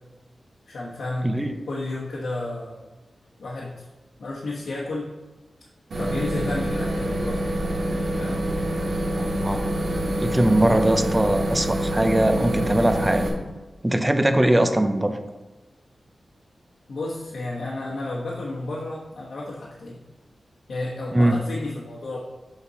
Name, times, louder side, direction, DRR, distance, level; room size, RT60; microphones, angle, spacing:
voice 1, 0.7-1.3 1.7-2.8 3.4-3.8 4.2-5.1 5.9-7.7 8.1-8.4 16.9-20.0 20.7-22.2, left 2 dB, 80° left, -5 dB, 1.2 m, -32 dB
sound 1, 5.9-13.3, right 1 dB, 80° right, 2.1 m, -26 dB
voice 2, 9.1-9.6 10.2-13.2 13.8-15.2 21.1-21.4, right 1 dB, 15° right, 8 dB, 0.5 m, -21 dB
7.0 x 5.2 x 4.1 m, 1.1 s
wide cardioid pair, 145°, 0 cm